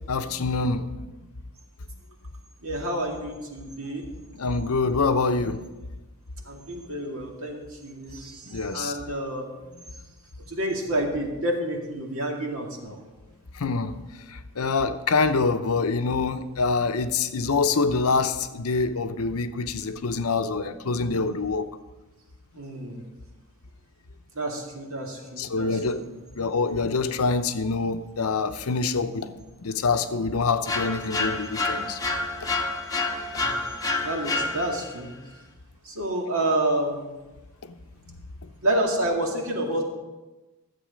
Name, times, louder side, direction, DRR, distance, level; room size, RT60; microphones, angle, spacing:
voice 1, 0.1-0.8 4.4-5.6 8.5-9.0 13.6-14.0 14.3-21.7 25.4-26.0 26.4-29.3 29.6-32.0 37.6-37.7, left 4 dB, 75° left, 10 dB, 0.7 m, -25 dB
voice 2, 2.6-4.1 6.5-9.5 10.5-13.0 22.5-23.0 24.3-26.1 33.3-33.5 34.0-35.1 35.8-37.1 38.6-39.8, right 1 dB, 65° right, 1 dB, 2.1 m, -29 dB
sound 1, 30.7-35.0, left 3 dB, 15° left, 0.8 m, -28 dB
13.5 x 7.7 x 5.1 m, 1.1 s
head